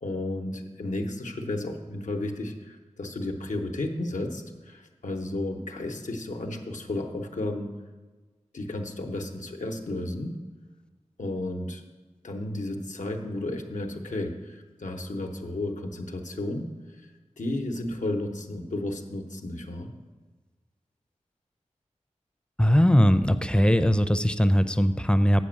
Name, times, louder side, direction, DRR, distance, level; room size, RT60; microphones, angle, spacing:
voice 1, 0.0-7.8 8.5-10.4 11.2-11.8 12.2-16.7 17.0-17.1 17.4-19.9, left 2 dB, 90° left, 2 dB, 0.8 m, -33 dB
voice 2, 22.6-25.4, equal, 10° left, 11 dB, 0.4 m, -20 dB
8.2 x 5.1 x 7.4 m, 1.3 s
wide cardioid pair, 60°, 12 cm